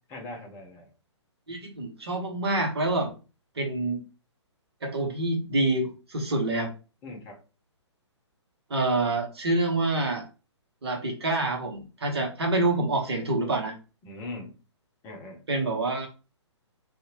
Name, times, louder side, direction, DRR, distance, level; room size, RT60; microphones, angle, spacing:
voice 1, 0.1-0.9 7.0-7.4 14.0-14.5 15.0-15.4, left 2 dB, 15° left, 1 dB, 0.6 m, -40 dB
voice 2, 1.5-3.1 3.6-4.0 4.8-6.7 8.7-10.3 10.8-13.8 15.5-16.1, right 2 dB, 60° right, 2 dB, 1.0 m, -27 dB
2.7 x 2.5 x 2.8 m, 0.32 s
figure-of-eight pair, 125°, 15 cm